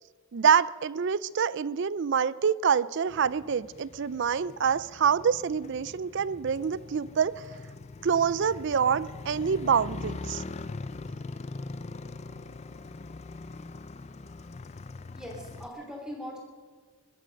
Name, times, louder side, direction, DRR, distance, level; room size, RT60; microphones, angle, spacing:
voice 1, 0.3-7.4 8.0-10.4, right 7 dB, 55° right, 19 dB, 0.4 m, -26 dB
Motorcycle, 3.1-15.7, left 3 dB, 30° left, 0.4 m, -42 dB
voice 2, 15.1-16.4, equal, 5° right, 0 dB, 2.9 m, -40 dB
21.0 x 13.0 x 5.2 m, 1.5 s
head